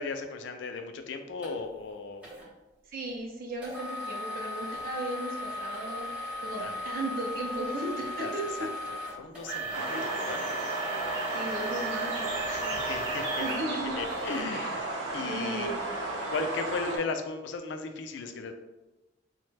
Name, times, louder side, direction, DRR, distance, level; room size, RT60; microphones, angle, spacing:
voice 1, 0.0-2.3 6.6-6.8 8.0-8.3 8.6-10.4 12.5-13.4 14.0-14.8 15.1-15.7 16.3-18.5, left 4 dB, 65° left, 6 dB, 0.3 m, -36 dB
sound 1, 1.4-1.5 2.2-2.4 3.6-14.5 15.0-15.1 15.7-15.9, right 1 dB, 5° right, 0.7 m, -36 dB
voice 2, 2.9-8.7 9.8-10.1 11.3-12.8 13.4-14.0 14.5-14.8 15.3-15.9, right 1 dB, 50° right, -1 dB, 0.5 m, -36 dB
sound 2, 9.7-17.0, right 2 dB, 85° right, 0.7 m, -34 dB
3.1 x 2.1 x 3.2 m, 1.1 s
head